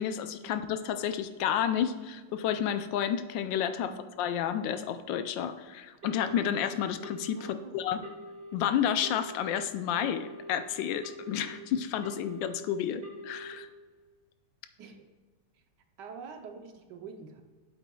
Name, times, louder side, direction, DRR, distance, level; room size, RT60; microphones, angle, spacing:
voice 1, 0.0-3.9 4.2-8.0 8.5-13.7, left 9 dB, 85° left, 10 dB, 1.3 m, -31 dB
Telephone, 6.0-6.5 7.0-7.5 8.0-8.5 9.0-9.5 10.0-10.5 11.0-11.5 12.0-12.5 13.0-13.5, equal, 35° right, 1.9 m, -45 dB
voice 2, 7.4-8.0 14.8-15.1 15.5-15.6 16.0-17.4, right 5 dB, 75° right, 5 dB, 1.3 m, -46 dB
8.3 x 7.8 x 2.3 m, 1.4 s
omnidirectional pair, 2.0 m